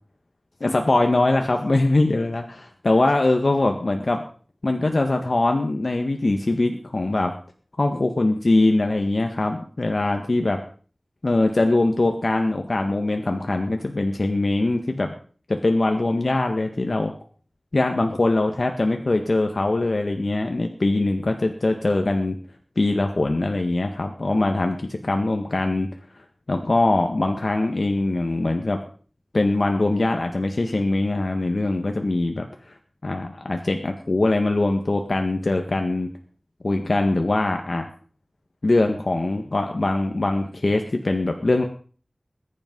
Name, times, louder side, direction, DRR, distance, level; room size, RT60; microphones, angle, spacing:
voice 1, 0.6-2.4 2.9-4.2 4.6-7.3 7.8-10.6 11.2-15.2 15.5-17.1 17.7-22.4 22.8-25.9 26.5-28.8 29.3-32.8 33.0-36.1 36.6-37.9 38.6-41.6, left 2 dB, 70° left, 4 dB, 1.7 m, -22 dB
21.0 x 10.5 x 5.4 m, 0.43 s
wide cardioid pair, 45°, 0 cm